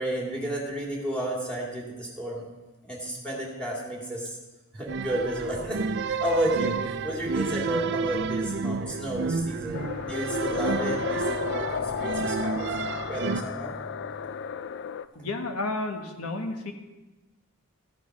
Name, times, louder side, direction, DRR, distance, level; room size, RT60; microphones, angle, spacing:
voice 1, 0.0-2.4 2.8-4.4 4.7-12.7 13.1-13.8, right 1 dB, 5° left, -3 dB, 2.5 m, -32 dB
sound 1, 4.8-14.6, equal, 30° left, 1.1 m, -45 dB
sound 2, 4.9-13.4, right 5 dB, 50° right, 0.4 m, -30 dB
sound 3, 9.7-15.1, left 6 dB, 55° left, 0.4 m, -33 dB
voice 2, 15.1-16.7, left 2 dB, 80° left, 4 dB, 1.4 m, -31 dB
14.0 x 6.2 x 6.0 m, 1.1 s
head